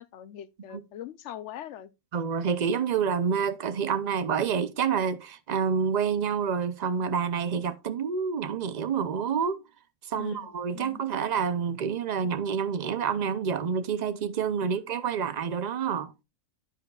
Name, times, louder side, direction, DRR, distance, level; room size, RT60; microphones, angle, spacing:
voice 1, 0.0-1.9 10.2-11.0, left 11 dB, 65° left, 0.8 m, -42 dB
voice 2, 2.1-9.6 10.1-16.1, right 6 dB, 65° right, 0.4 m, -28 dB
10.0 x 9.0 x 2.3 m
omnidirectional pair, 1.5 m